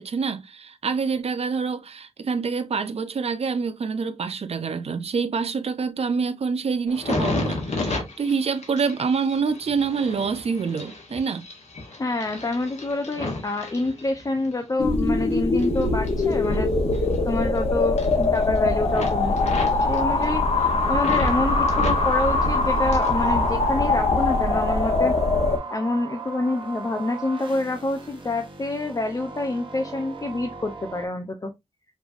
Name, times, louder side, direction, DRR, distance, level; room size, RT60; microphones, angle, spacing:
voice 1, 0.0-11.5, right 5 dB, 60° right, 0.6 m, -26 dB
sound 1, 6.9-14.5 15.0-17.6 17.8-18.6 18.9-21.4 21.7-23.2 23.5-24.3 24.8-25.0, left 2 dB, 80° left, 1.4 m, -33 dB
voice 2, 12.0-16.7 17.2-25.1 25.7-31.5, left 2 dB, 30° left, 0.6 m, -27 dB
sound 2, 14.8-25.6, left 3 dB, 65° left, 1.2 m, -22 dB
sound 3, 21.3-31.1, right 5 dB, 45° right, 1.2 m, -37 dB
5.2 x 3.2 x 2.5 m
wide cardioid pair, 110°, 11 cm